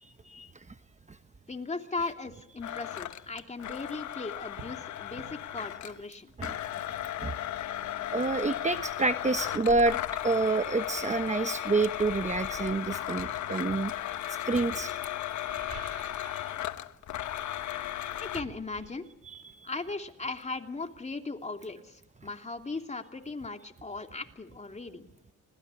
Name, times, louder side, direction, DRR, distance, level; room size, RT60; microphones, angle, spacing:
voice 1, 0.0-0.5 6.4-6.5 7.2-7.3 8.1-10.0 10.2-13.9 14.3-14.9 16.3-16.4 19.3-19.5, right 3 dB, 25° right, 10 dB, 1.1 m, -28 dB
voice 2, 1.5-6.3 18.2-19.0 19.6-25.1, left 3 dB, 25° left, 4 dB, 2.9 m, -38 dB
Domestic sounds home sounds, 2.6-6.0 6.4-18.4, left 12 dB, 70° left, 1.3 m, -35 dB
sound 1, 3.8-4.0 4.6-4.8 5.2-5.4 7.3-7.4 7.8-9.4 10.5-10.7 11.2-12.6 13.2-14.0 15.3-16.5 16.8-17.2 17.5-21.1 21.3-21.4, right 7 dB, 75° right, 4.1 m, -51 dB
26.0 x 20.0 x 8.4 m, 0.84 s
cardioid pair, 90°, 30 cm